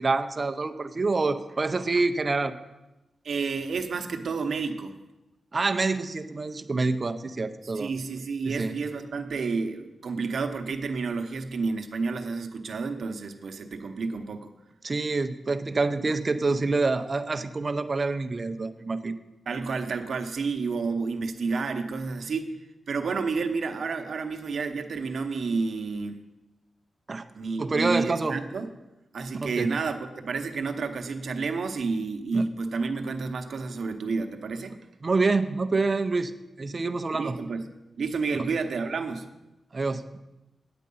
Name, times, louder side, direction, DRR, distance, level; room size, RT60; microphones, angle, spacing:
voice 1, 0.0-2.6 5.5-7.9 8.4-8.7 14.8-19.2 27.1-27.3 27.6-28.4 29.3-29.7 32.3-32.5 35.0-37.4 38.3-38.5 39.7-40.2, right 3 dB, 30° right, 10 dB, 0.5 m, -27 dB
voice 2, 3.2-4.9 7.6-14.5 19.5-22.5 22.9-26.2 27.3-28.7 29.1-34.8 37.1-37.6 38.0-39.3, right 4 dB, 60° right, 6 dB, 0.8 m, -30 dB
9.0 x 8.5 x 5.4 m, 1.0 s
wide cardioid pair, 160°, 0 cm